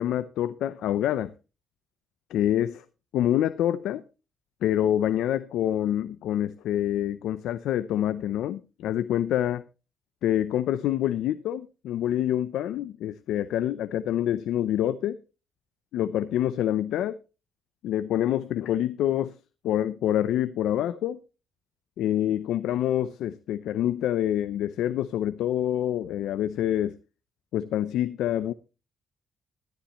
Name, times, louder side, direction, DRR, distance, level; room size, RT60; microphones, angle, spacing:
voice 1, 0.0-1.3 2.3-2.8 3.1-4.0 4.6-9.6 10.2-15.2 15.9-17.2 17.8-19.4 19.6-21.2 22.0-27.0 27.5-28.5, left 11 dB, 85° left, 0.6 m, -26 dB
13.0 x 13.0 x 3.1 m
cardioid pair, 90°, 0 cm